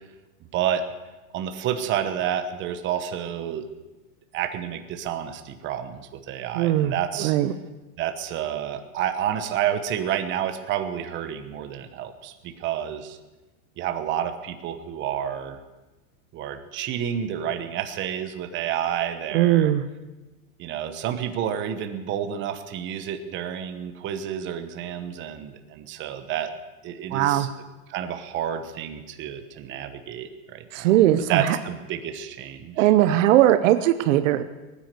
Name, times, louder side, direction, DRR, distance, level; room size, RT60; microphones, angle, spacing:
voice 1, 0.5-0.9 1.3-3.7 4.3-7.4 8.0-13.2 13.8-15.6 16.3-19.7 20.6-26.5 26.8-27.5 27.9-31.0 31.3-32.9, right 9 dB, 25° right, 8 dB, 1.0 m, -30 dB
voice 2, 6.5-6.9 7.2-7.5 19.3-19.8 27.1-27.5 30.7-31.6 32.8-34.4, right 13 dB, 60° right, 11 dB, 0.8 m, -19 dB
20.5 x 9.6 x 6.7 m, 1.1 s
supercardioid pair, 155°, 44 cm